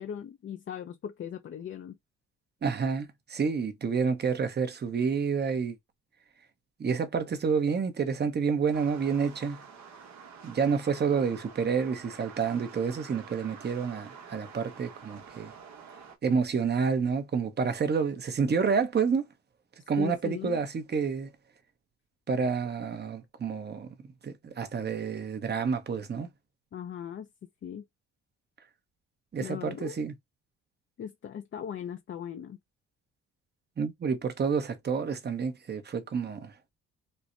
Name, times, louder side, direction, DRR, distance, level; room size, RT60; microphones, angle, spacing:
voice 1, 0.0-2.0 20.0-20.6 26.7-27.3 27.6-27.8 29.4-30.0 31.0-32.6, left 9 dB, 40° left, 0.5 m, -38 dB
voice 2, 2.6-5.8 6.8-9.6 10.4-15.5 16.2-19.2 19.9-21.3 22.3-23.9 24.2-26.3 29.3-30.1 33.8-36.5, right 5 dB, 35° right, 0.8 m, -29 dB
sound 1, 8.7-16.2, right 6 dB, 65° right, 1.1 m, -48 dB
4.3 x 2.1 x 2.5 m
cardioid pair, 90°, 30 cm